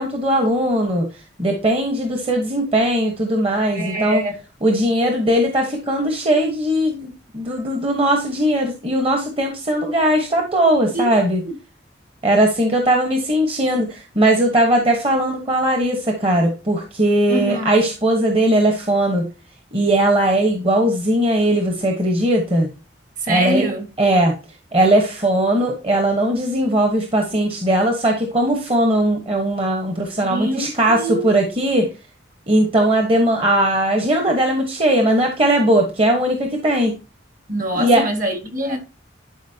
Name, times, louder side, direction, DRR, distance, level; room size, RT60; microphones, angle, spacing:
voice 1, 0.0-4.2 4.6-11.4 12.2-19.3 19.7-22.7 23.3-23.7 24.0-24.3 24.7-31.9 32.5-36.9 37.8-38.0, right 1 dB, 30° right, 1.2 m, -19 dB
voice 2, 3.7-4.4 10.9-11.1 11.4-11.6 13.1-13.2 17.3-17.8 23.2-23.9 30.2-31.4 37.5-38.8, right 1 dB, 45° right, 1.8 m, -24 dB
11.5 x 4.9 x 2.8 m
head